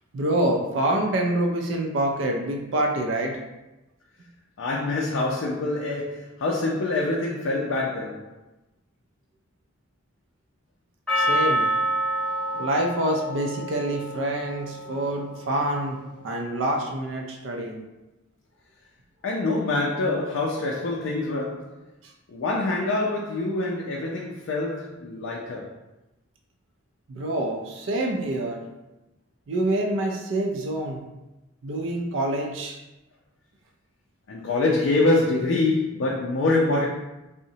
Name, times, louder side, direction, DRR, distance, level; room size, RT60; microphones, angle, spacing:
voice 1, 0.1-3.4 11.2-11.6 12.5-16.0 16.2-17.8 27.1-28.6 29.5-31.0 31.6-32.8, right 1 dB, 65° right, 1 dB, 0.4 m, -26 dB
voice 2, 4.6-8.3 19.2-21.8 22.3-25.7 34.3-36.9, left 2 dB, 70° left, -2 dB, 0.4 m, -25 dB
Percussion, 11.1-15.6, right 1 dB, 5° left, 0.8 m, -27 dB
3.7 x 2.1 x 2.7 m, 1.0 s
head